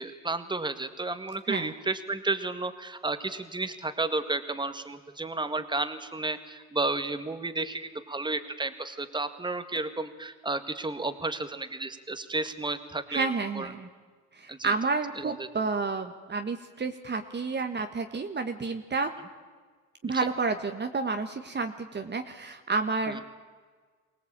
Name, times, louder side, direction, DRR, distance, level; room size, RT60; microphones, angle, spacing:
voice 1, 0.0-13.7 14.5-14.7 15.2-15.5 20.1-20.3 23.1-23.3, right 2 dB, 15° right, 10 dB, 1.9 m, -32 dB
voice 2, 13.1-13.9 14.3-19.1 20.0-23.3, right 4 dB, 35° right, 6 dB, 1.5 m, -30 dB
24.0 x 18.0 x 8.9 m, 1.5 s
cardioid pair, 90°, 30 cm